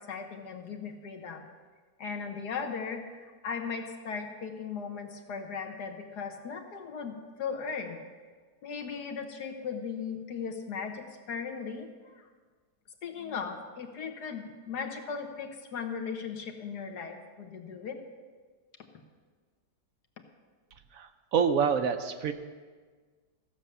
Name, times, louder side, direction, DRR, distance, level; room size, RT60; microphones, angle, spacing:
voice 1, 0.0-1.5 2.0-8.0 8.6-12.3 13.0-18.0, left 6 dB, 75° left, 3 dB, 1.7 m, -37 dB
voice 2, 20.9-22.3, right 6 dB, 65° right, 7 dB, 1.0 m, -27 dB
15.0 x 7.0 x 6.7 m, 1.5 s
omnidirectional pair, 1.8 m